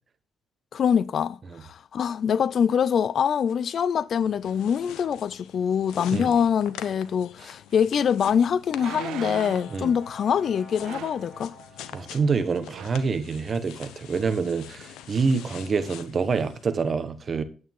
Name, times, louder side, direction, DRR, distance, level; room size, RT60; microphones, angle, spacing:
voice 1, 0.7-11.5, left 7 dB, 60° left, 0.4 m, -24 dB
sound 1, 4.2-16.6, left 10 dB, 90° left, 0.9 m, -45 dB
sound 2, 7.7-7.8 8.7-9.8 10.8-11.3 12.2-12.4 12.7-13.0 13.6-13.7, right 13 dB, 85° right, 0.3 m, -38 dB
Brass instrument, 8.6-12.7, left 1 dB, 35° left, 5.5 m, -49 dB
voice 2, 11.9-17.4, right 5 dB, 40° right, 1.2 m, -26 dB
9.6 x 8.3 x 3.7 m
cardioid pair, 90°, 0 cm